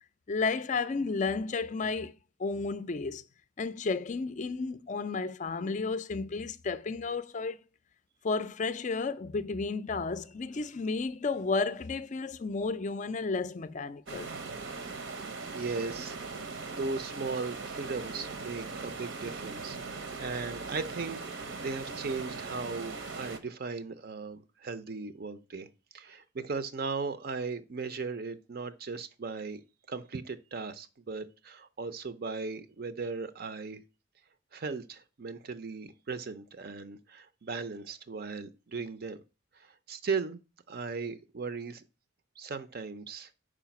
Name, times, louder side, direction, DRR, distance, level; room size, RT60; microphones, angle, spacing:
voice 1, 0.3-2.1 2.4-3.2 3.6-7.6 8.2-14.3, left 4 dB, 40° left, 0.4 m, -32 dB
sound 1, 14.1-23.4, right 4 dB, 70° right, 0.9 m, -40 dB
voice 2, 15.5-16.2 16.7-25.7 25.9-29.6 29.9-33.8 34.5-39.2 39.9-40.4 40.7-41.8 42.4-43.3, right 4 dB, 50° right, 0.5 m, -37 dB
5.0 x 4.8 x 5.8 m
head